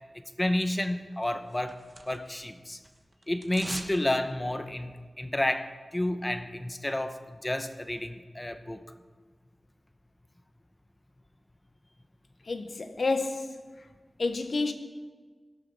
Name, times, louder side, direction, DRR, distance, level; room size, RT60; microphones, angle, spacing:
voice 1, 0.4-1.8 2.1-2.8 3.3-7.2 7.4-8.8, left 1 dB, 20° left, 1.0 m, -30 dB
sound 1, 1.2-2.5 2.7-4.0 4.3-4.4, right 1 dB, 35° right, 1.3 m, -42 dB
voice 2, 12.5-13.5 14.2-14.7, left 3 dB, 75° left, 1.1 m, -29 dB
17.5 x 12.5 x 4.2 m
wide cardioid pair, 70°, 0 cm